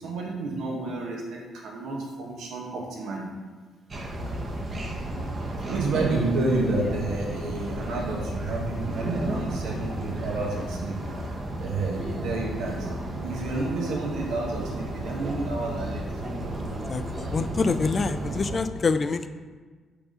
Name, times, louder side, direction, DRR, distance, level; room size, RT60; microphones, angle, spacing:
voice 1, 0.0-3.3 5.7-11.0 11.6-12.9 13.2-16.1, right 2 dB, 80° right, -1 dB, 1.3 m, -30 dB
sound 1, 3.9-18.6, right 1 dB, 40° right, 1.0 m, -33 dB
voice 2, 16.7-19.3, left 4 dB, 40° left, 11 dB, 0.4 m, -26 dB
5.3 x 4.8 x 3.7 m, 1.4 s
cardioid pair, 90°, 0 cm